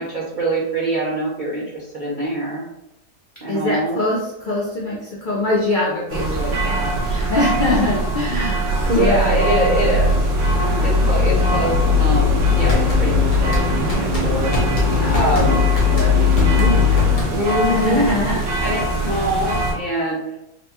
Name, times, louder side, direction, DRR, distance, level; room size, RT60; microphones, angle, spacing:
voice 1, 0.0-2.7 3.4-4.0 8.9-10.2 10.8-13.6 13.9-14.5 15.1-15.6 17.3-18.2 18.6-20.4, equal, 55° right, -7 dB, 0.5 m, -23 dB
voice 2, 3.5-9.4 9.7-9.8 10.6-11.0 14.9-15.6 15.9-17.1 17.7-18.4, left 1 dB, 70° left, -4 dB, 0.4 m, -24 dB
sound 1, 6.1-19.7, left 2 dB, 85° right, 1.4 m, -19 dB
sound 2, 12.7-17.6, right 1 dB, 35° left, 1.0 m, -26 dB
4.0 x 2.3 x 2.7 m, 0.83 s
omnidirectional pair, 1.7 m